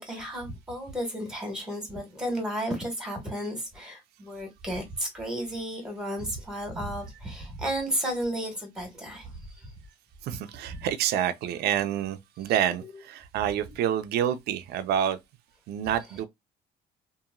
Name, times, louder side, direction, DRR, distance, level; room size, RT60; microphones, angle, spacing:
voice 1, 0.0-9.7 10.7-10.9 12.8-12.9 13.6-13.8, equal, 5° right, 1.5 m, -33 dB
voice 2, 10.2-15.2 15.7-16.2, right 10 dB, 70° right, 0.5 m, -28 dB
2.8 x 2.6 x 2.4 m
cardioid pair, 110°, 17 cm